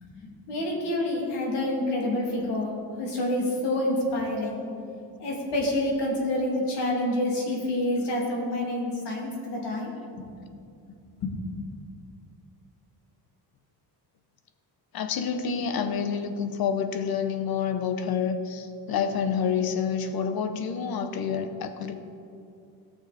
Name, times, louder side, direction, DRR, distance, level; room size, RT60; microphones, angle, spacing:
voice 1, 0.2-2.7 3.0-4.7 5.2-10.2 11.2-11.3, left 1 dB, 90° left, -2 dB, 2.8 m, -28 dB
voice 2, 14.9-22.0, left 6 dB, 60° left, 8 dB, 0.9 m, -28 dB
17.5 x 6.6 x 4.2 m, 2.5 s
cardioid pair, 170°, 40 cm